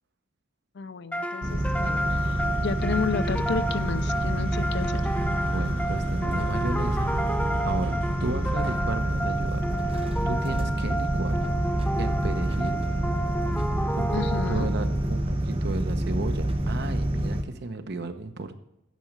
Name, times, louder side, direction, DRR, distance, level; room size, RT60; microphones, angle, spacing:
voice 1, 0.7-5.0 14.1-14.7, left 5 dB, 65° left, 14 dB, 0.5 m, -32 dB
sound 1, 1.1-15.0, right 1 dB, 5° left, 0.5 m, -32 dB
sound 2, 1.4-17.4, right 1 dB, 30° right, 0.8 m, -27 dB
sound 3, 1.6-12.2, left 2 dB, 80° left, 2.3 m, -49 dB
voice 2, 5.4-10.0 10.3-11.4 12.0-12.8 13.9-18.5, right 2 dB, 60° right, 8 dB, 0.9 m, -34 dB
9.2 x 6.2 x 6.7 m, 0.87 s
head